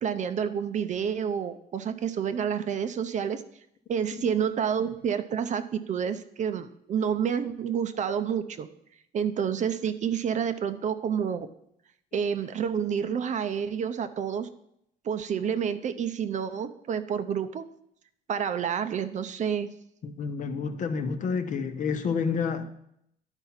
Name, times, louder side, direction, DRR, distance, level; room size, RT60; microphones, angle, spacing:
voice 1, 0.0-3.4 3.9-8.7 9.1-11.5 12.1-14.5 15.0-17.7 18.3-19.7, right 7 dB, 45° right, 0.7 m, -29 dB
voice 2, 20.0-22.7, left 5 dB, 50° left, 0.9 m, -29 dB
11.0 x 4.5 x 5.6 m
cardioid pair, 110°, 17 cm